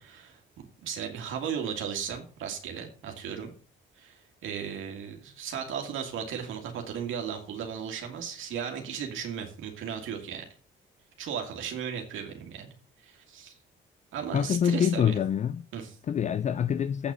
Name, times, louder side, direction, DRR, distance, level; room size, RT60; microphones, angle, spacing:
voice 1, 0.0-3.5 4.0-10.5 11.2-12.7 13.0-13.6 14.1-15.1 15.7-16.0, right 7 dB, 80° right, 2.0 m, -36 dB
voice 2, 14.3-15.6 16.1-17.1, left 8 dB, 35° left, 0.4 m, -26 dB
8.2 x 6.1 x 6.8 m
cardioid pair, 90°, 20 cm